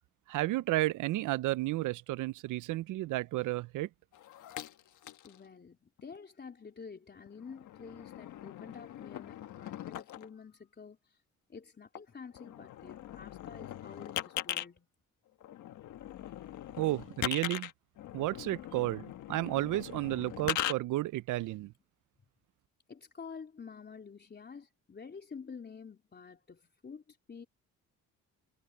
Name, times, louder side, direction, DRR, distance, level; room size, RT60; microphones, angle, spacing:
voice 1, 0.3-3.9 16.8-17.7 18.1-21.7, right 17 dB, 80° right, 0.6 m, -32 dB
sound 1, 4.1-5.4 6.0-6.2 7.1-10.3 12.0-12.1 12.3-14.7 15.4-20.7, left 12 dB, 75° left, 1.5 m, -40 dB
voice 2, 5.2-11.2 11.5-14.9 22.9-27.5, left 5 dB, 35° left, 3.7 m, -49 dB
cardioid pair, 90°, 30 cm